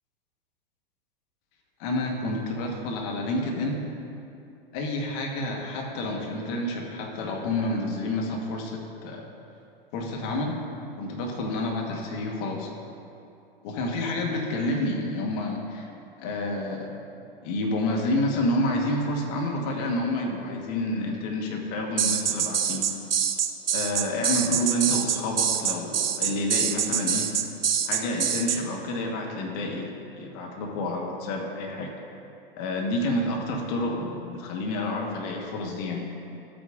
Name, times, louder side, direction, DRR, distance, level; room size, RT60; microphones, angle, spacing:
voice 1, 1.8-3.8 4.7-9.3 9.9-10.6 11.0-12.7 13.6-15.9 16.2-16.9 17.4-22.9 23.7-27.3 27.9-31.9 32.6-36.0, left 1 dB, 45° left, 1 dB, 1.4 m, -29 dB
sound 1, 22.0-28.6, right 8 dB, 75° right, 0.6 m, -25 dB
13.0 x 8.7 x 2.6 m, 2.7 s
figure-of-eight pair, 100°, 29 cm